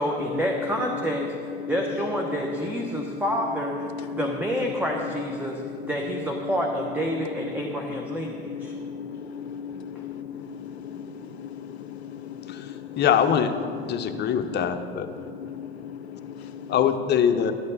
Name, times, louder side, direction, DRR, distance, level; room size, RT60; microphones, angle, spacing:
voice 1, 0.0-3.8 4.1-8.8, equal, 5° right, 0.9 m, -28 dB
voice 2, 8.6-11.1 11.4-13.0 13.8-14.7 15.2-16.8, left 7 dB, 85° left, 0.6 m, -38 dB
voice 3, 13.0-13.5 13.9-15.1 16.7-17.5, left 8 dB, 35° left, 0.8 m, -22 dB
12.5 x 8.6 x 4.1 m
hypercardioid pair, 80°, 31 cm